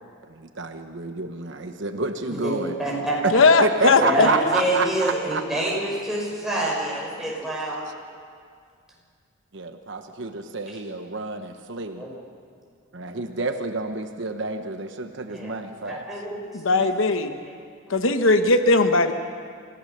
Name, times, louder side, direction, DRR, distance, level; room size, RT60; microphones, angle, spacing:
voice 1, 0.3-2.7 3.2-3.3 3.6-5.4 9.5-12.0 12.9-16.0, right 3 dB, 60° right, 7 dB, 1.1 m, -29 dB
voice 2, 2.3-3.2 3.9-7.8 12.0-12.1 15.3-15.6 15.9-16.9, right 1 dB, ahead, -4 dB, 5.5 m, -27 dB
voice 3, 3.3-4.5 16.5-17.4 17.9-19.1, left 3 dB, 75° left, 8 dB, 1.0 m, -19 dB
27.0 x 16.5 x 6.7 m, 2.1 s
head